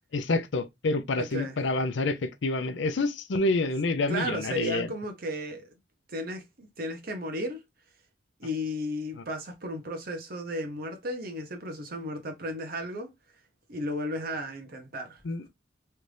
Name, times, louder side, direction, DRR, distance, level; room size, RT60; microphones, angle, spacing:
voice 1, 0.1-4.9 15.2-15.4, left 2 dB, 75° left, 0.5 m, -28 dB
voice 2, 1.2-1.6 4.1-5.7 6.1-7.6 8.4-13.1 13.7-15.2, equal, 55° right, 1.0 m, -34 dB
3.3 x 2.6 x 3.2 m
head